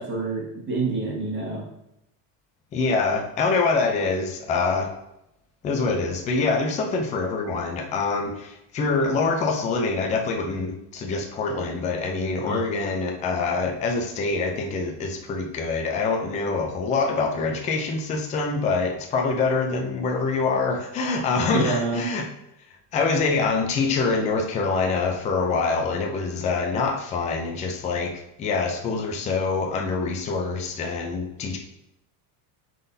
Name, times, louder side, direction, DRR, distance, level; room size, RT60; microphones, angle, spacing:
voice 1, 0.0-1.6 12.4-12.6 21.5-22.0, right 4 dB, 25° right, -3 dB, 1.7 m, -27 dB
voice 2, 2.7-4.9 5.6-22.3 22.9-31.6, left 4 dB, 15° left, 2 dB, 0.4 m, -25 dB
8.9 x 4.0 x 2.7 m, 0.84 s
cardioid pair, 165°, 47 cm